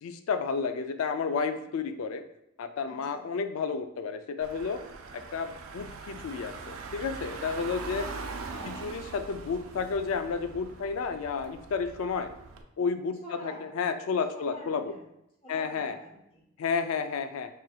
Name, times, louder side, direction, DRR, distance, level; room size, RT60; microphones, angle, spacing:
voice 1, 0.0-2.2 2.6-4.8 5.3-8.1 8.7-12.3 12.8-14.9 15.5-16.0 16.6-17.5, left 5 dB, 90° left, 9 dB, 0.4 m, -31 dB
voice 2, 2.8-3.2 8.0-8.8 13.2-13.7 14.3-15.1 15.4-16.5, equal, 30° left, -4 dB, 1.1 m, -48 dB
Car / Engine, 4.4-12.6, right 4 dB, 85° right, 0.4 m, -42 dB
5.6 x 2.5 x 2.3 m, 0.82 s
head